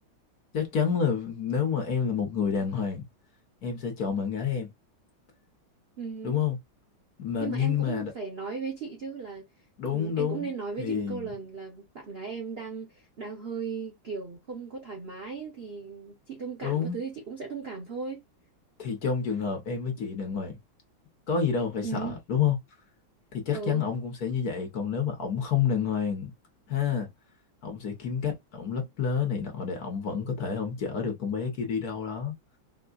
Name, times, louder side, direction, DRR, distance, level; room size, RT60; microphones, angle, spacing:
voice 1, 0.5-3.0 3.6-4.7 6.2-6.6 7.2-8.1 9.8-10.5 10.8-11.3 16.6-17.0 18.8-20.6 21.3-22.6 23.3-26.3 26.7-27.1 27.6-32.3, left 7 dB, 55° left, 1.4 m, -29 dB
voice 2, 6.0-6.4 7.4-9.5 9.9-18.2 21.8-22.2 23.5-23.8, right 5 dB, 85° right, 0.5 m, -37 dB
4.5 x 2.3 x 2.3 m
omnidirectional pair, 2.3 m